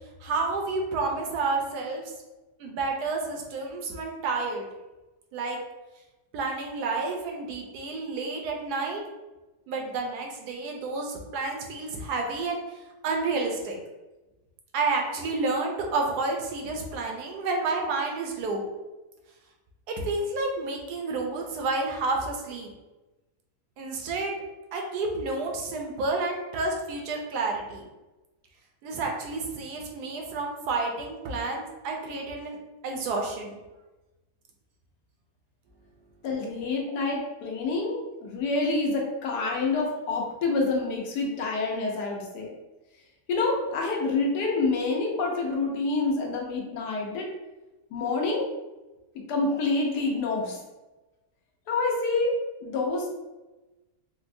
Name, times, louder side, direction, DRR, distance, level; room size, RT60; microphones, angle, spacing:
voice 1, 0.2-2.0 2.6-4.6 5.3-5.6 6.3-9.0 9.7-12.6 13.0-13.8 14.7-18.6 20.0-22.7 23.8-24.4 24.7-27.8 28.8-32.6 32.8-33.6, right 3 dB, 80° right, 1 dB, 1.1 m, -30 dB
voice 2, 36.2-42.5 43.3-47.3 47.9-48.5 49.3-50.6 51.7-52.3 52.6-53.1, left 3 dB, 80° left, -1 dB, 1.3 m, -27 dB
4.3 x 2.0 x 2.6 m, 1.1 s
omnidirectional pair, 1.8 m